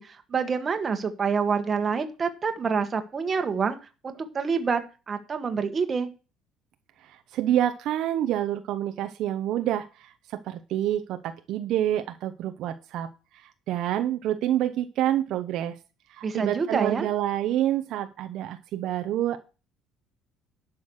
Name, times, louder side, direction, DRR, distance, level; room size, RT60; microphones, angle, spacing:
voice 1, 0.0-3.8 4.0-4.8 5.1-6.1 16.2-17.1, right 5 dB, 25° right, 7 dB, 1.5 m, -27 dB
voice 2, 7.0-15.8 16.1-19.4, right 12 dB, 60° right, 7 dB, 0.9 m, -28 dB
11.0 x 6.2 x 6.4 m, 0.32 s
cardioid pair, 155°, 0 cm